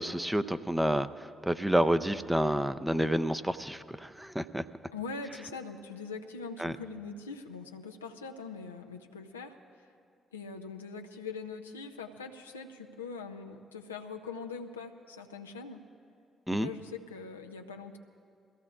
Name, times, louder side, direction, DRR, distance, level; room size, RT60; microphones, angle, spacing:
voice 1, 0.0-4.6 6.6-6.7 16.5-16.7, right 1 dB, 5° right, 12 dB, 0.6 m, -29 dB
voice 2, 4.9-9.6 10.3-15.8 16.5-18.0, left 4 dB, 85° left, 4 dB, 0.6 m, -42 dB
22.5 x 15.5 x 2.5 m, 2.4 s
figure-of-eight pair, 40°, 0 cm